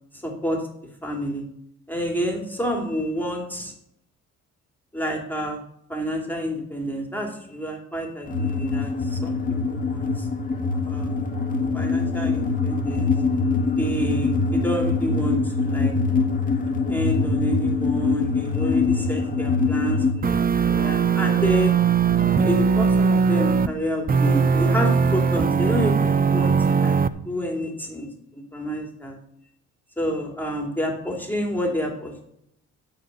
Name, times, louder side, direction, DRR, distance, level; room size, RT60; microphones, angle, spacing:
voice 1, 0.2-0.6 1.0-1.4 1.9-3.7 4.9-5.6 5.9-9.3 9.7-10.3 10.8-11.2 11.7-13.1 13.8-15.9 16.9-21.7 22.2-27.0 27.2-28.1 28.3-29.2 30.0-32.2, equal, 5° left, 0 dB, 2.8 m, -29 dB
sound 1, 8.3-20.1, left 4 dB, 25° left, 2.0 m, -23 dB
sound 2, 20.2-23.7 24.1-27.1, right 6 dB, 30° right, 0.6 m, -20 dB
12.5 x 4.5 x 6.8 m, 0.74 s
cardioid pair, 90°, 30 cm